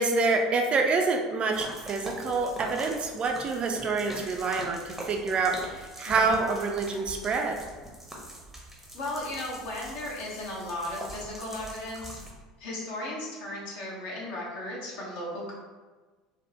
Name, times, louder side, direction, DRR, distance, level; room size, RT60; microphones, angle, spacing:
voice 1, 0.0-7.6, right 3 dB, 35° right, 3 dB, 0.3 m, -27 dB
sound 1, 1.5-12.3, right 1 dB, 5° right, 0.7 m, -42 dB
voice 2, 6.1-6.4 8.9-12.2 12.6-15.5, left 1 dB, 55° left, -3 dB, 0.9 m, -36 dB
3.4 x 2.0 x 2.7 m, 1.3 s
figure-of-eight pair, 70°, 3 cm